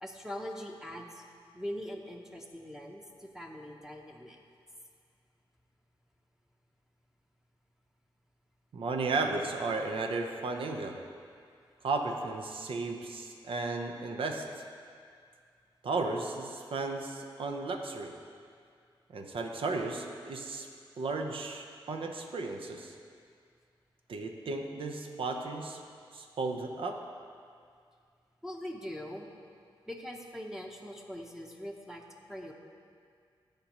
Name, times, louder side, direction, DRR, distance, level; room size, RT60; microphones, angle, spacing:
voice 1, 0.0-1.2 1.5-4.4 28.4-29.3 29.9-32.0 32.3-32.5, equal, 5° right, 0 dB, 0.8 m, -42 dB
voice 2, 8.7-11.0 11.8-14.4 15.8-18.1 19.1-20.7 21.0-22.9 24.1-25.8 26.1-27.0, right 3 dB, 70° right, 3 dB, 0.8 m, -34 dB
15.5 x 5.2 x 3.0 m, 2.2 s
cardioid pair, 75°, 9 cm